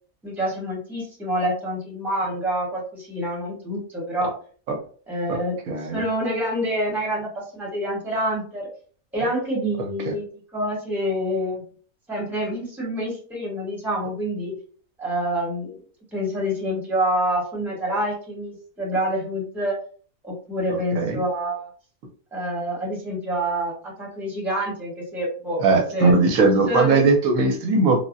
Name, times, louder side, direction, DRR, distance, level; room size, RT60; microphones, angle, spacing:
voice 1, 0.2-4.3 5.1-5.6 5.9-8.7 9.1-10.3 10.5-11.6 12.1-14.5 15.0-15.8 16.1-19.8 20.2-21.7 22.3-26.1 26.7-27.1, equal, ahead, -4 dB, 1.0 m, -27 dB
voice 2, 5.7-6.0 20.7-21.2 25.6-28.0, right 3 dB, 80° right, 3 dB, 1.1 m, -19 dB
3.3 x 2.1 x 2.5 m, 0.43 s
omnidirectional pair, 1.5 m